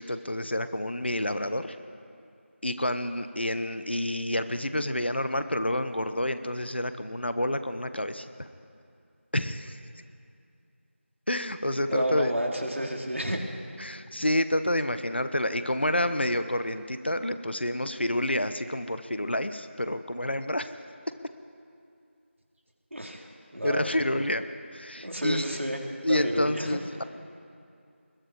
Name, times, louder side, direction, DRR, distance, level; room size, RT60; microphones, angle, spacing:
voice 1, 0.0-1.8 2.6-8.5 9.3-9.8 11.3-12.3 13.8-20.8 23.6-24.4 24.7-25.5 26.0-27.0, left 1 dB, 55° left, 11 dB, 1.2 m, -29 dB
voice 2, 11.9-13.4 22.9-24.2 25.0-26.7, right 1 dB, 70° right, 1 dB, 3.7 m, -31 dB
30.0 x 21.5 x 4.9 m, 2.5 s
figure-of-eight pair, 175°, 7 cm